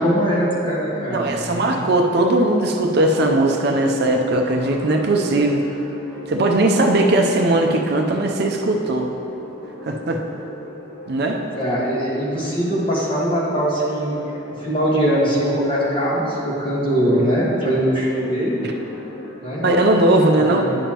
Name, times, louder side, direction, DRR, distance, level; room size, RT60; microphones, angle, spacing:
voice 1, 0.0-1.8 11.5-14.2 14.6-18.6 19.4-19.6 20.6-20.8, equal, 25° left, -6 dB, 1.4 m, -21 dB
voice 2, 1.1-5.6 6.3-9.1 9.8-10.2 11.1-11.4 18.6-18.7 19.6-20.7, right 2 dB, 50° right, 2 dB, 0.5 m, -18 dB
sound 1, 2.7-19.9, left 1 dB, 50° left, 1.5 m, -38 dB
10.0 x 7.0 x 2.9 m, 2.9 s
head